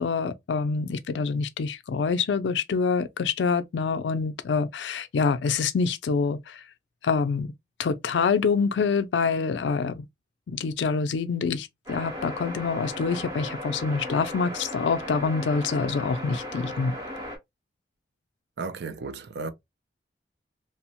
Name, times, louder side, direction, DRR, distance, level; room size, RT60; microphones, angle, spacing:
voice 1, 0.0-6.6 7.0-7.5 7.8-10.1 10.5-16.9, left 5 dB, 80° left, 0.4 m, -26 dB
sound 1, 11.9-17.4, left 1 dB, 20° right, 0.8 m, -36 dB
voice 2, 18.6-19.5, right 4 dB, 65° right, 0.4 m, -34 dB
2.9 x 2.0 x 2.8 m
head